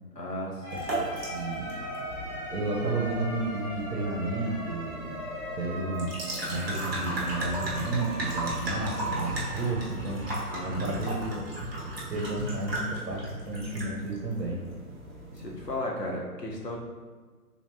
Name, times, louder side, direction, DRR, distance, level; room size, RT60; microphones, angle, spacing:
voice 1, 0.1-0.8 10.5-11.0 15.3-16.8, left 1 dB, 85° left, -2 dB, 1.2 m, -35 dB
sound 1, 0.6-12.4, equal, 10° left, 1.3 m, -41 dB
sound 2, 0.7-15.8, right 1 dB, 40° right, 1.3 m, -36 dB
voice 2, 1.3-1.7 2.5-5.1 5.5-6.2 6.5-10.2 10.6-11.5 12.1-14.6, right 2 dB, 65° right, -3 dB, 1.1 m, -32 dB
4.5 x 3.4 x 2.8 m, 1.4 s
figure-of-eight pair, 140°, 48 cm